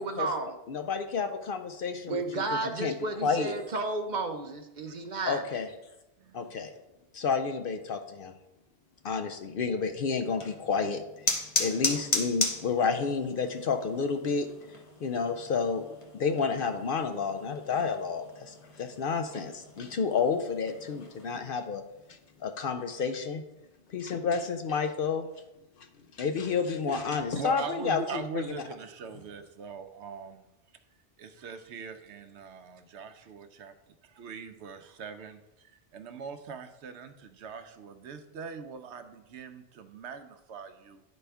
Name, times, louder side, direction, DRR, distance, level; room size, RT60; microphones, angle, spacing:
voice 1, 0.0-0.6 2.1-5.4, right 2 dB, 50° right, 6 dB, 0.6 m, -32 dB
voice 2, 0.7-2.4 2.8-2.9 3.2-3.5 5.3-5.7 6.3-6.7 7.1-8.3 9.0-14.5 15.0-15.9 16.1-21.8 22.4-23.4 23.9-25.3 26.2-28.6, left 5 dB, 60° left, 7 dB, 0.6 m, -30 dB
voice 3, 6.2-6.6 26.8-27.1 27.3-30.5 31.2-41.0, right 6 dB, 75° right, 8 dB, 0.9 m, -42 dB
sound 1, 10.2-21.4, left 2 dB, 30° left, 1.0 m, -37 dB
11.0 x 4.2 x 3.4 m, 0.94 s
omnidirectional pair, 1.2 m